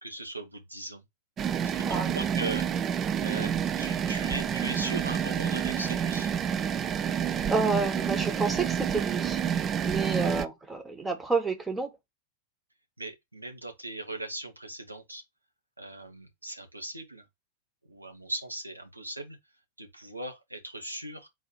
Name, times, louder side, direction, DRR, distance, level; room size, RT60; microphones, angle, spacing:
voice 1, 0.0-1.0 1.7-2.7 2.9-3.5 3.8-6.3 13.0-15.2 15.8-17.2 17.8-19.4 19.8-21.3, right 1 dB, 85° right, 1.1 m, -39 dB
sound 1, 1.4-10.5, right 8 dB, 25° right, 0.4 m, -29 dB
voice 2, 1.8-2.2 7.5-9.4 9.8-11.9, right 4 dB, 10° right, 1.1 m, -29 dB
4.1 x 2.8 x 4.5 m
figure-of-eight pair, 90°, 0 cm